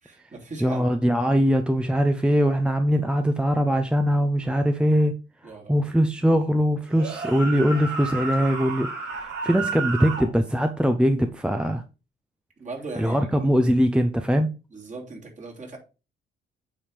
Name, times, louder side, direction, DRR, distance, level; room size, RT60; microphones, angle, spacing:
voice 1, 0.0-0.9 5.4-5.8 12.6-13.2 13.5-13.6 14.7-15.8, right 3 dB, 40° right, 3.0 m, -38 dB
voice 2, 0.6-5.2 5.4-11.8 13.0-14.5, equal, 5° right, 0.6 m, -22 dB
sound 1, 6.9-10.3, right 3 dB, 55° right, 4.3 m, -31 dB
8.6 x 3.6 x 4.9 m
cardioid pair, 90°, 20 cm